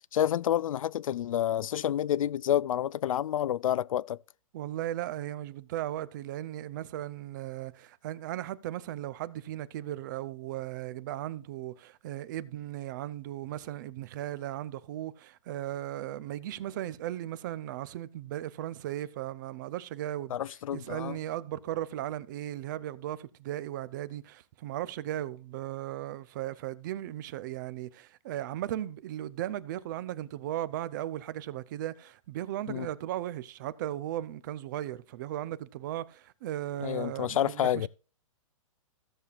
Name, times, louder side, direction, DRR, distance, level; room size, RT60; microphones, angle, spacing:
voice 1, 0.1-4.2 20.3-21.2 32.7-32.9 36.8-37.9, left 11 dB, 75° left, 0.4 m, -29 dB
voice 2, 4.5-37.9, right 13 dB, 35° right, 0.6 m, -37 dB
16.0 x 6.8 x 2.4 m
hypercardioid pair, 160°, 17 cm